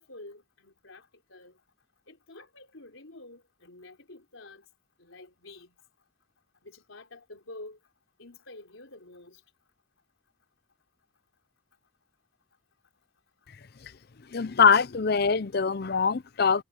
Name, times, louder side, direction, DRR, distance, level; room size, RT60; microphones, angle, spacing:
voice 1, 0.0-1.6 2.1-4.7 5.0-5.8 6.6-7.8 8.2-9.4, left 2 dB, 80° left, 4.0 m, -48 dB
voice 2, 14.3-16.6, left 6 dB, 50° left, 0.6 m, -23 dB
head